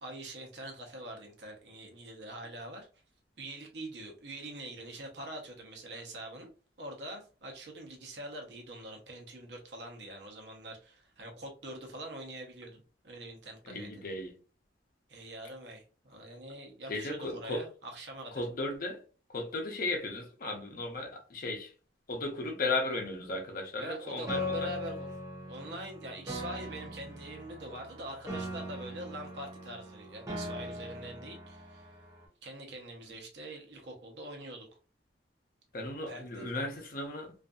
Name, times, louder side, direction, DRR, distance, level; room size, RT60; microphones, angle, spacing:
voice 1, 0.0-2.9 3.4-6.5 6.8-13.9 15.1-18.4 23.8-25.1 25.4-31.9 32.4-34.7 36.1-36.7, right 1 dB, 70° right, 0.8 m, -44 dB
voice 2, 13.6-14.3 16.9-17.6 18.3-19.0 19.3-21.7 22.1-24.7 35.7-37.3, left 2 dB, 55° left, 0.7 m, -35 dB
Piano, 24.3-32.3, left 1 dB, 20° right, 0.6 m, -40 dB
2.6 x 2.5 x 2.3 m
head